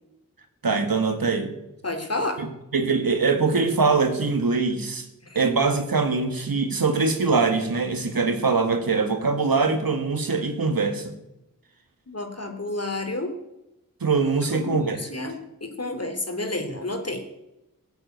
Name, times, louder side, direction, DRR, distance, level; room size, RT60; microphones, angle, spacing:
voice 1, 0.6-1.5 2.4-5.0 5.3-11.1 14.0-15.0, right 4 dB, 90° right, 7 dB, 1.9 m, -23 dB
voice 2, 1.8-2.4 5.2-5.4 12.1-13.3 14.5-17.2, left 2 dB, 45° left, 5 dB, 3.1 m, -30 dB
16.5 x 8.1 x 9.3 m, 0.90 s
wide cardioid pair, 45°, 34 cm